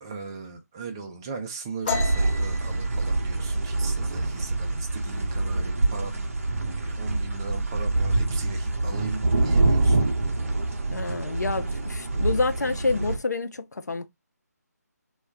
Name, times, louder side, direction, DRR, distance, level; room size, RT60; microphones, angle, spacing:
voice 1, 0.0-6.3 6.6-10.1, right 4 dB, 15° right, 0.3 m, -38 dB
sound 1, 1.8-5.3 5.6-5.9 6.3-6.8 7.1-7.9, left 5 dB, 25° left, 0.8 m, -35 dB
sound 2, 1.9-13.2, right 2 dB, 50° right, 0.6 m, -25 dB
voice 2, 10.9-14.1, left 3 dB, 75° left, 0.5 m, -28 dB
2.3 x 2.1 x 3.3 m
figure-of-eight pair, 155°, 9 cm